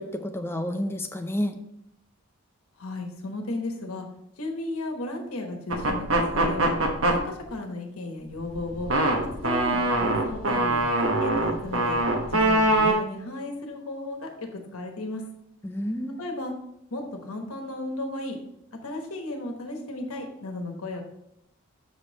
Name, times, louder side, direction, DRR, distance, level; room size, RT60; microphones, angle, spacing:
voice 1, 0.0-1.6 15.6-16.2, equal, 10° left, 5 dB, 0.6 m, -30 dB
voice 2, 2.8-4.1 4.4-6.8 7.1-8.9 9.4-12.0 12.3-15.2 16.2-16.5 16.9-18.4 18.8-21.0, left 2 dB, 75° left, 3 dB, 1.3 m, -34 dB
sound 1, 5.7-7.2 8.4-12.9, right 2 dB, 65° right, 1.1 m, -23 dB
6.9 x 5.3 x 4.1 m, 0.78 s
head